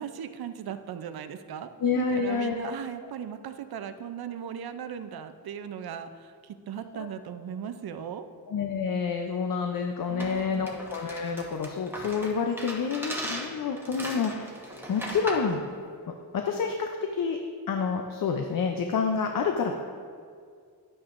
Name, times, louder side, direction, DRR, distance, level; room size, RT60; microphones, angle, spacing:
voice 1, 0.0-8.2 10.1-10.7, right 8 dB, 65° right, 9 dB, 0.6 m, -38 dB
voice 2, 1.8-2.7 6.9-7.1 8.5-14.5 14.9-15.6 16.3-17.4 17.7-19.8, left 5 dB, 55° left, 3 dB, 0.6 m, -28 dB
sound 1, 10.2-15.5, equal, 5° right, 1.0 m, -38 dB
11.5 x 8.6 x 2.5 m, 2.2 s
wide cardioid pair, 165°, 40 cm